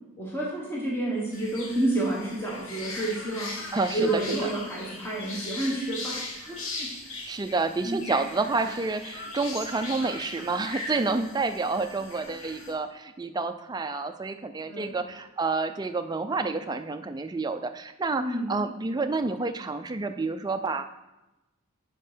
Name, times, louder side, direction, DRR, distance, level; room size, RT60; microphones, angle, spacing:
voice 1, 0.2-6.9 7.8-8.1 14.7-15.0 18.2-18.5, right 1 dB, 10° left, -5 dB, 1.3 m, -30 dB
sound 1, 1.3-12.7, left 2 dB, 65° left, 1.4 m, -39 dB
voice 2, 3.7-4.2 7.3-20.9, right 3 dB, 20° right, 8 dB, 0.4 m, -29 dB
6.6 x 5.3 x 5.0 m, 1.0 s
head